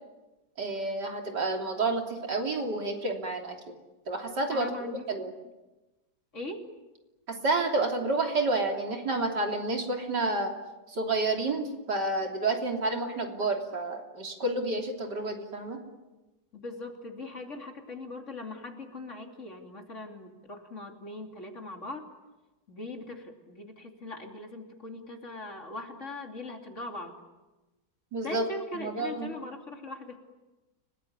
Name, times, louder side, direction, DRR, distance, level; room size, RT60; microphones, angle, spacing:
voice 1, 0.6-3.6 4.1-5.3 7.3-10.5 10.9-15.8 28.1-28.4 28.7-29.3, right 2 dB, 70° right, 2 dB, 3.9 m, -30 dB
voice 2, 4.5-5.0 6.3-6.6 16.5-22.1 22.7-27.2 28.2-30.2, left 2 dB, 40° left, 3 dB, 3.2 m, -40 dB
30.0 x 19.5 x 9.6 m, 1.1 s
omnidirectional pair, 1.9 m